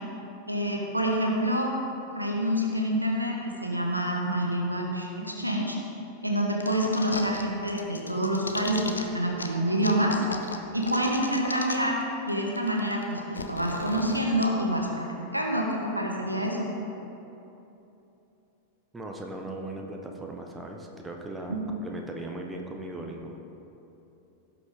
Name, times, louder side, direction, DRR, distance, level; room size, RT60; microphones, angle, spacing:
voice 1, 0.4-1.8 2.1-5.8 6.2-10.2 10.7-12.0 12.3-15.1 15.3-16.7 21.5-21.6, equal, 85° right, 0 dB, 1.2 m, -27 dB
sound 1, 6.6-7.4 7.7-9.0 9.4-9.5 9.8-12.0 12.3-12.4 12.6-14.4, left 3 dB, 75° left, 0.7 m, -35 dB
voice 2, 18.9-23.4, right 2 dB, 10° right, 2 dB, 1.0 m, -38 dB
16.5 x 5.7 x 3.6 m, 2.9 s
figure-of-eight pair, 90°, 0 cm